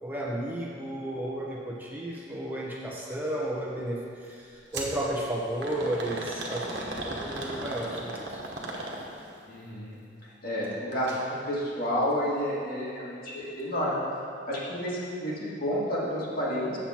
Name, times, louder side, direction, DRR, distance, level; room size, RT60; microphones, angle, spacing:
voice 1, 0.0-8.4, right 1 dB, 10° right, -4 dB, 0.9 m, -33 dB
sound 1, 4.7-5.0 5.6-9.3 10.9-11.2 11.6-11.7 12.5-12.6, right 1 dB, 70° right, 1.2 m, -36 dB
voice 2, 9.5-10.0 10.4-14.0 14.5-16.8, equal, 55° left, -6 dB, 2.0 m, -30 dB
7.5 x 7.3 x 4.3 m, 2.3 s
head